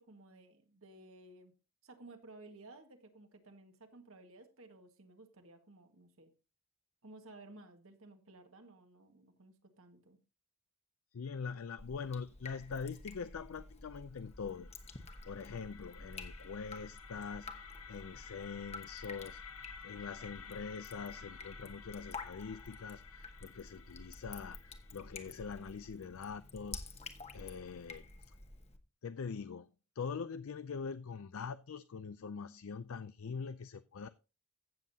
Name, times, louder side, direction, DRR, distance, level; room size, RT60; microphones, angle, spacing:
voice 1, 0.0-1.5 1.8-6.3 7.0-10.2, right 2 dB, 65° right, 1.7 m, -56 dB
voice 2, 11.1-14.7 15.2-17.5 17.9-19.4 19.8-26.8 27.3-28.1 29.0-29.7 30.0-34.1, left 5 dB, 70° left, 0.4 m, -43 dB
Drip, 11.8-28.8, left 3 dB, 30° left, 1.1 m, -50 dB
sound 1, 14.2-26.2, left 7 dB, 85° left, 1.2 m, -54 dB
15.5 x 7.4 x 2.8 m
head